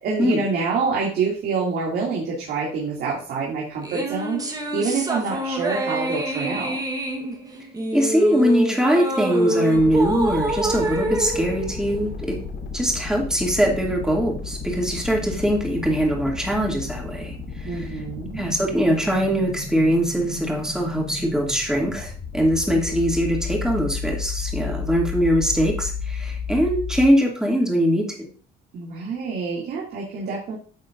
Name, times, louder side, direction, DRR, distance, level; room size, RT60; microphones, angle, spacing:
voice 1, 0.0-6.8 17.7-18.4 28.7-30.5, right 4 dB, 70° right, -4 dB, 2.4 m, -26 dB
sound 1, 3.8-12.4, right 1 dB, 20° right, 1.2 m, -27 dB
voice 2, 7.9-12.4 12.7-18.0 18.3-28.3, equal, 5° right, -1 dB, 2.4 m, -22 dB
sound 2, 9.7-27.1, left 5 dB, 80° left, 4.5 m, -33 dB
10.0 x 6.6 x 2.6 m, 0.40 s
cardioid pair, 110°, 17 cm